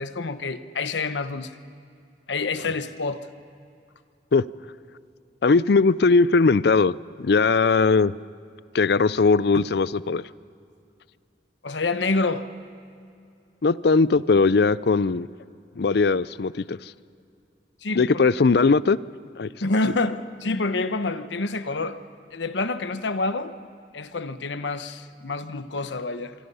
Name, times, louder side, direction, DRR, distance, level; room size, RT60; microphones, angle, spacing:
voice 1, 0.0-1.5 2.3-3.3 11.6-12.4 17.8-18.1 19.6-22.0 22.3-23.5 23.9-26.3, left 3 dB, 75° left, 11 dB, 1.0 m, -27 dB
voice 2, 5.4-8.1 8.7-10.2 13.6-15.3 15.8-16.9 17.9-19.0 19.4-19.5, left 4 dB, 60° left, 18 dB, 0.5 m, -19 dB
25.5 x 24.5 x 5.6 m, 2.5 s
head